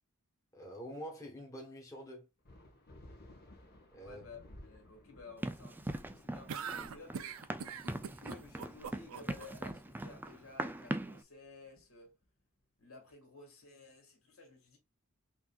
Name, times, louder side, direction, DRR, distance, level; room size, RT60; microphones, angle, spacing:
voice 1, 0.5-2.3 3.9-4.2, equal, 15° left, 1.3 m, -46 dB
sound 1, 2.4-12.4, left 1 dB, 50° left, 1.3 m, -59 dB
voice 2, 4.0-7.4 8.1-12.1 12.8-14.8, left 3 dB, 75° left, 2.2 m, -54 dB
Run, 5.4-11.2, right 1 dB, 10° right, 0.3 m, -41 dB
sound 2, 6.5-9.5, right 7 dB, 70° right, 0.5 m, -42 dB
5.9 x 2.8 x 2.3 m
head